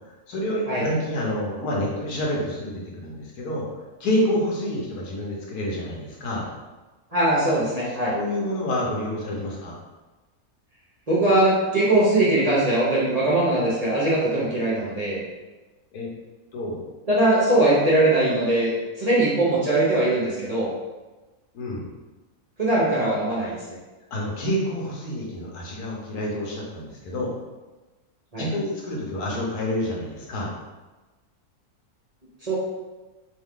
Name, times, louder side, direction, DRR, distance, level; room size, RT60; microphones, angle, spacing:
voice 1, 0.3-3.7 4.0-6.5 8.1-9.8 15.9-16.1 16.5-16.8 21.5-21.8 24.1-27.3 28.3-30.5, left 1 dB, 80° left, -3 dB, 1.5 m, -28 dB
voice 2, 7.1-8.1 11.1-15.2 17.1-18.7 19.0-20.7 22.6-23.6 28.3-28.5 32.4-32.6, right 1 dB, 30° right, -7 dB, 0.9 m, -21 dB
3.5 x 3.2 x 3.7 m, 1.2 s
omnidirectional pair, 1.6 m